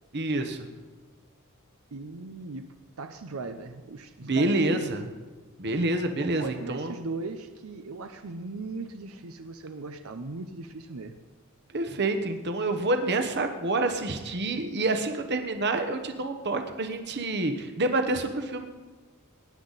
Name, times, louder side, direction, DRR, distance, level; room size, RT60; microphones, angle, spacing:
voice 1, 0.1-0.7 4.2-5.1 5.6-6.9 11.7-18.7, right 2 dB, 50° right, 7 dB, 1.1 m, -27 dB
voice 2, 1.9-2.7 3.0-4.9 6.2-11.2, right 3 dB, 75° right, 7 dB, 0.7 m, -38 dB
19.0 x 9.9 x 4.1 m, 1.3 s
head